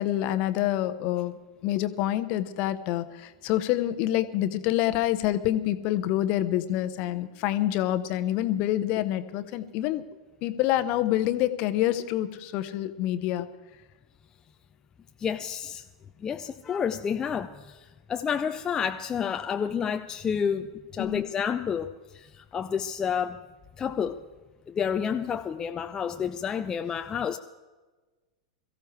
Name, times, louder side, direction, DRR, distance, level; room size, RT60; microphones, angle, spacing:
voice 1, 0.0-10.0 10.4-13.5 21.0-21.3, left 13 dB, 40° left, 11 dB, 1.0 m, -27 dB
voice 2, 15.2-15.8 16.2-17.8 18.1-23.4 23.8-24.2 24.7-27.4, left 7 dB, 20° left, 7 dB, 0.6 m, -30 dB
22.5 x 15.0 x 3.3 m, 1.3 s
figure-of-eight pair, 95°, 3 cm